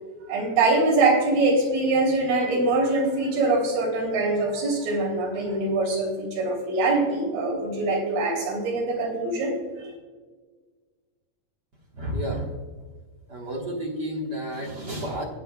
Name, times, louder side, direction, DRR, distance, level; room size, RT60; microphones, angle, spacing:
voice 1, 0.3-9.9, right 2 dB, 85° right, -1 dB, 4.9 m, -23 dB
voice 2, 11.9-12.5 13.3-15.2, equal, 65° right, -2 dB, 1.0 m, -31 dB
17.0 x 9.4 x 2.3 m, 1.4 s
omnidirectional pair, 4.3 m